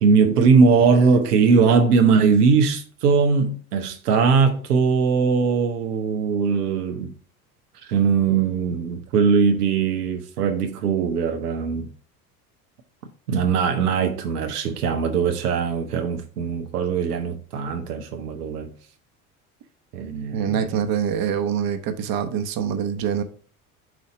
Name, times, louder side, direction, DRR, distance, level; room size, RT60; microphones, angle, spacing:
voice 1, 0.0-7.1 7.8-11.9 13.3-18.7 19.9-20.8, right 5 dB, 90° right, 0.9 m, -20 dB
voice 2, 20.3-23.2, right 8 dB, 50° right, 1.1 m, -25 dB
7.7 x 2.8 x 4.9 m
hypercardioid pair, 75°, 45 cm